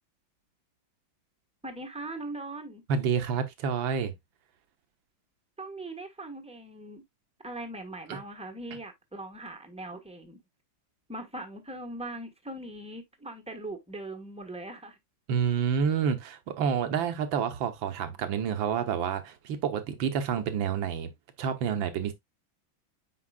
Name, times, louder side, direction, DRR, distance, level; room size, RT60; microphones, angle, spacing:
voice 1, 1.6-2.8 5.6-7.0 7.4-10.4 11.1-15.0, right 2 dB, 5° right, 1.1 m, -40 dB
voice 2, 2.9-4.1 8.1-8.2 15.3-21.1 21.4-22.1, right 7 dB, 75° right, 1.8 m, -29 dB
8.6 x 5.2 x 2.4 m
omnidirectional pair, 2.1 m